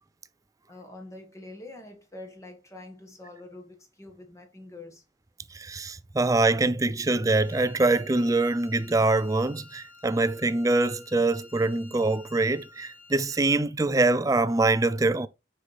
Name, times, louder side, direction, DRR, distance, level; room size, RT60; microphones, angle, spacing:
voice 1, 0.7-5.0, left 2 dB, 15° left, 1.4 m, -45 dB
voice 2, 5.5-15.3, right 2 dB, 20° right, 0.4 m, -24 dB
Wind instrument woodwind instrument, 7.3-13.6, left 4 dB, 40° left, 2.0 m, -52 dB
6.4 x 5.6 x 3.3 m
head